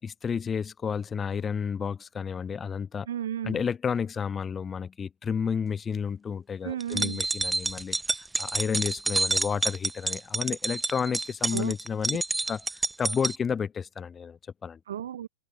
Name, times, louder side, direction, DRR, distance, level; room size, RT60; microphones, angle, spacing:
voice 1, 0.0-3.1 3.4-8.0 8.4-12.2 12.5-14.8, left 6 dB, 20° left, 5.8 m, -31 dB
voice 2, 3.1-3.6 6.6-7.2 11.5-11.7 14.9-15.3, right 10 dB, 65° right, 7.4 m, -33 dB
sound 1, 6.8-13.4, right 2 dB, 5° right, 1.9 m, -28 dB
figure-of-eight pair, 90°, 0 cm